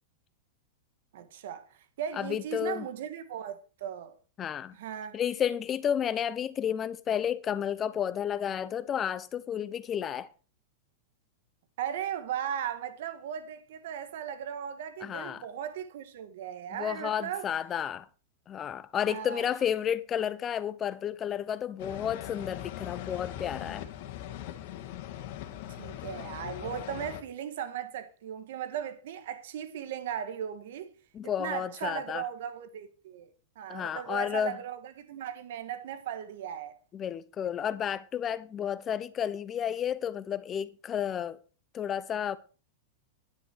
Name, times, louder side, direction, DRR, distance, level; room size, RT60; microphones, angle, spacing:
voice 1, 1.1-4.2 4.7-5.2 11.8-17.5 19.1-19.5 25.7-30.9 31.2-33.3 33.6-36.8, right 9 dB, 70° right, 1.8 m, -37 dB
voice 2, 2.2-2.8 4.4-4.8 5.1-10.3 15.0-15.4 16.7-18.1 18.5-23.8 31.1-32.2 33.7-34.6 36.9-41.4 41.7-42.4, left 9 dB, 25° left, 0.9 m, -31 dB
sound 1, 21.8-27.2, left 11 dB, 55° left, 1.9 m, -40 dB
10.5 x 9.8 x 4.7 m
supercardioid pair, 145°, 0 cm